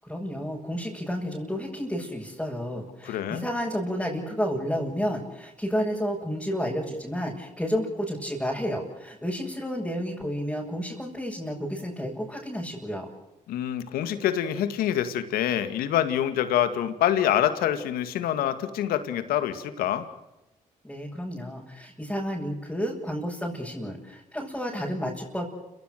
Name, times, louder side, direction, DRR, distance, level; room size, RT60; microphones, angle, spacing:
voice 1, 0.0-13.1 20.8-25.5, equal, 5° left, -4 dB, 7.9 m, -31 dB
voice 2, 3.1-3.5 13.5-20.1, left 11 dB, 90° left, 10 dB, 2.2 m, -26 dB
30.0 x 17.5 x 6.8 m, 0.97 s
supercardioid pair, 65°, 15 cm